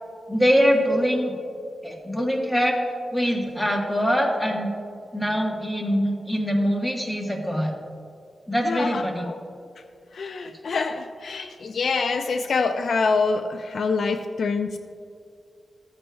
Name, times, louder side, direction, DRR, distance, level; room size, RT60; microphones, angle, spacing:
voice 1, 0.3-1.3 1.8-2.8 3.1-4.7 5.1-7.7 8.5-9.3, equal, 10° left, 0 dB, 1.3 m, -23 dB
voice 2, 8.6-9.4 10.1-14.8, left 4 dB, 65° left, 7 dB, 0.4 m, -26 dB
14.0 x 9.6 x 2.3 m, 2.4 s
wide cardioid pair, 145°, 0 cm